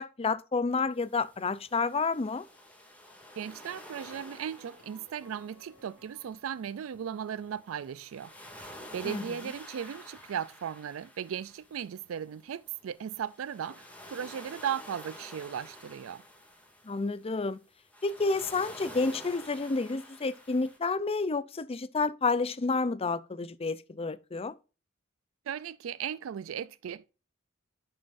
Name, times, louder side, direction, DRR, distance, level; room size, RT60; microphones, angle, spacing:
voice 1, 0.0-2.4 9.0-9.2 16.8-17.6 18.0-24.5, left 4 dB, 30° left, 0.5 m, -30 dB
sound 1, 0.9-20.8, left 1 dB, 10° left, 2.3 m, -50 dB
sound 2, 3.4-6.8, left 1 dB, 10° right, 4.6 m, -57 dB
voice 2, 3.4-8.3 8.6-16.2 25.5-27.1, right 8 dB, 90° right, 0.4 m, -37 dB
10.5 x 6.9 x 2.5 m
head